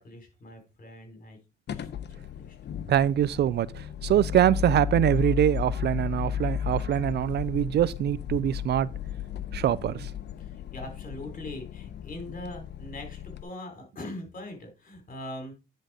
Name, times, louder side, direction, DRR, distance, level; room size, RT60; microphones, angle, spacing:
voice 1, 0.0-1.4 1.7-2.6 10.4-15.5, left 1 dB, 45° left, 4.0 m, -42 dB
sound 1, 1.7-13.4, left 9 dB, 60° left, 0.8 m, -34 dB
voice 2, 2.9-8.9 9.5-10.1, right 11 dB, 60° right, 0.4 m, -24 dB
10.0 x 4.0 x 4.9 m
cardioid pair, 90°, 20 cm